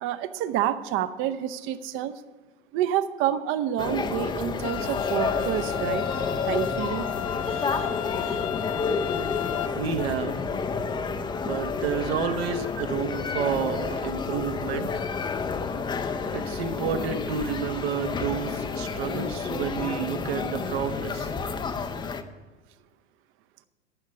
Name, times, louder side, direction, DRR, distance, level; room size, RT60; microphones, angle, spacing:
voice 1, 0.0-2.2 2.7-6.0 6.5-7.1 7.4-8.0 8.2-8.5, right 11 dB, 35° right, 13 dB, 0.8 m, -29 dB
sound 1, 3.8-22.2, left 5 dB, 15° left, 0.6 m, -30 dB
sound 2, 4.6-9.7, left 12 dB, 40° left, 1.1 m, -34 dB
voice 2, 9.7-10.5 11.4-15.1 16.3-21.3, right 7 dB, 60° right, 7 dB, 1.2 m, -30 dB
13.5 x 6.4 x 8.2 m, 1.2 s
figure-of-eight pair, 95°, 35 cm